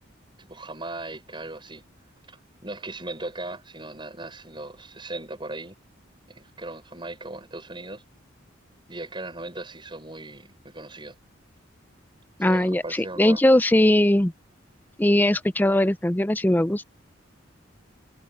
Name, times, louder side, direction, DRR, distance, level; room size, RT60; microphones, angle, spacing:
voice 1, 0.4-1.8 2.3-5.8 6.3-8.0 8.9-11.2 12.4-13.4, right 2 dB, 25° right, 5.6 m, -38 dB
voice 2, 12.4-14.3 15.0-16.8, left 1 dB, 10° left, 0.5 m, -20 dB
head